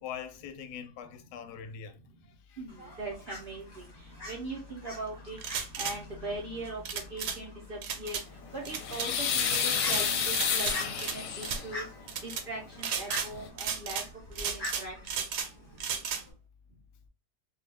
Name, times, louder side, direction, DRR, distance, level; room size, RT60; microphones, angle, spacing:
voice 1, 0.0-2.0 2.5-2.6, left 8 dB, 90° left, 1.2 m, -42 dB
voice 2, 2.6-5.4 5.8-8.2 8.5-11.9 12.2-14.0 14.3-15.1, right 2 dB, 65° right, 0.5 m, -40 dB
Fowl, 2.7-16.3, left 1 dB, 25° left, 0.5 m, -46 dB
sound 1, 5.4-6.0 6.9-7.4 7.8-8.2 8.7-9.1 9.5-10.0 10.3-11.2 11.4-11.6 12.1-12.4 12.8-13.3 13.6-14.1 14.4-15.5 15.8-16.2, right 7 dB, 85° right, 1.2 m, -34 dB
sound 2, 8.4-11.7 13.0-13.1 13.3-13.5, left 7 dB, 65° left, 0.9 m, -30 dB
2.7 x 2.3 x 3.3 m
omnidirectional pair, 1.7 m